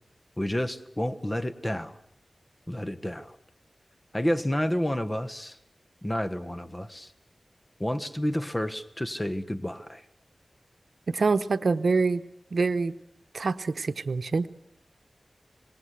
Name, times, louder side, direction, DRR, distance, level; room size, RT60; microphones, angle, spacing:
voice 1, 0.4-2.0 2.7-3.4 4.1-5.6 6.0-7.1 7.8-10.0, equal, 20° left, 9 dB, 1.3 m, -30 dB
voice 2, 11.1-12.2 12.5-12.9 13.3-14.5, right 4 dB, 80° right, 12 dB, 0.9 m, -25 dB
25.5 x 20.5 x 8.3 m, 0.74 s
wide cardioid pair, 75°, 0 cm